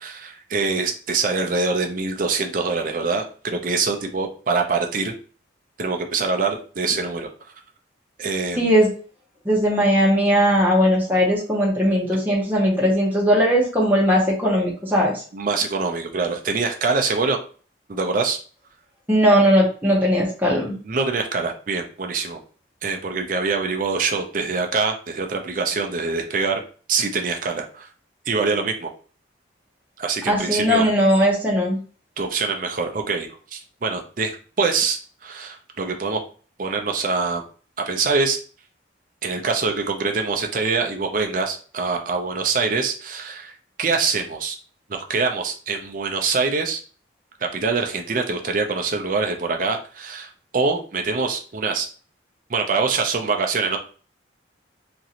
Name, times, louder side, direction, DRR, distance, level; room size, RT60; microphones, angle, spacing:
voice 1, 0.0-5.1 5.8-7.3 8.2-8.8 15.3-17.4 17.9-18.4 20.8-22.4 22.8-26.6 26.9-27.9 28.3-28.9 30.0-30.8 32.2-36.2 36.6-37.4 37.9-38.4 39.2-43.5 43.8-44.6 44.9-46.8 47.5-51.9 52.5-53.8, right 4 dB, 45° right, 3 dB, 0.5 m, -24 dB
voice 2, 8.5-8.9 9.5-15.1 19.1-20.7 30.3-31.8, equal, 10° right, -4 dB, 0.7 m, -18 dB
3.0 x 2.5 x 2.8 m, 0.40 s
head